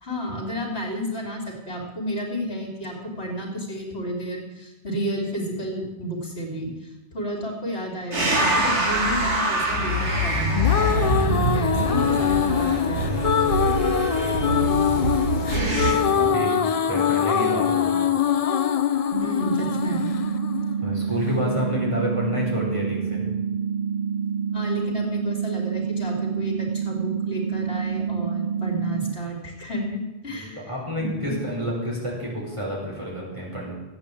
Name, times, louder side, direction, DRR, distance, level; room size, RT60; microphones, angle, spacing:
voice 1, 0.0-13.1 19.2-20.1 24.5-30.7 31.0-31.1, equal, 70° left, 1 dB, 3.2 m, -31 dB
sound 1, 8.1-15.9, right 1 dB, 90° right, 2.8 m, -24 dB
sound 2, 10.3-21.3, left 8 dB, 45° left, 0.5 m, -23 dB
voice 2, 15.3-16.5 16.9-18.0 20.8-23.4 30.3-33.7, equal, 25° right, -5 dB, 5.7 m, -29 dB
sound 3, 19.1-29.1, right 7 dB, 50° right, 1.3 m, -27 dB
15.0 x 8.7 x 8.4 m, 1.1 s
omnidirectional pair, 1.1 m